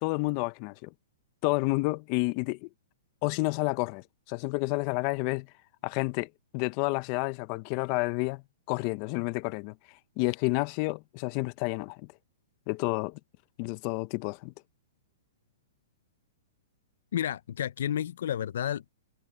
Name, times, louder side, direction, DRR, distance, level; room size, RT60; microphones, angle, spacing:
voice 1, 0.0-0.9 1.4-2.7 3.2-5.5 5.8-6.3 6.5-8.4 8.7-9.7 10.2-12.1 12.7-13.2 13.6-14.5, left 25 dB, 35° left, 0.7 m, -30 dB
voice 2, 17.1-18.9, left 10 dB, 70° left, 0.4 m, -31 dB
hypercardioid pair, 155°, 0 cm